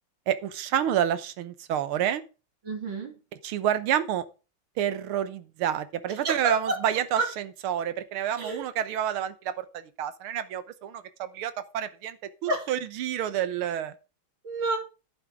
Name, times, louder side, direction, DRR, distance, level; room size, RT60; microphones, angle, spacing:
voice 1, 0.3-2.2 3.4-4.2 4.8-7.2 7.6-9.7 10.0-12.2 12.4-13.9, right 10 dB, 85° right, 12 dB, 1.8 m, -28 dB
voice 2, 2.6-3.1 6.1-6.8 7.2-7.3 8.4-8.6 12.5-12.7 14.4-14.8, right 3 dB, 60° right, 2 dB, 3.6 m, -29 dB
11.0 x 9.2 x 3.7 m, 0.32 s
omnidirectional pair, 2.3 m